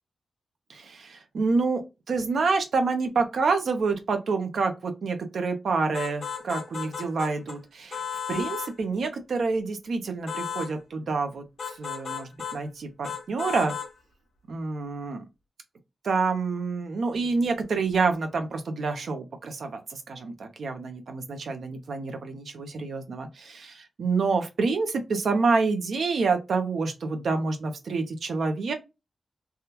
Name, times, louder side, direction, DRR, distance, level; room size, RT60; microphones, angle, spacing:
voice 1, 0.7-1.8 2.1-8.0 8.3-13.8 14.5-15.3 16.0-28.7, right 4 dB, 70° right, 7 dB, 0.7 m, -28 dB
sound 1, 5.9-7.6 7.9-8.7 10.3-10.7 11.6-12.6 13.0-13.9, left 7 dB, 60° left, 1.0 m, -34 dB
3.4 x 2.3 x 2.8 m, 0.24 s
wide cardioid pair, 180°, 0 cm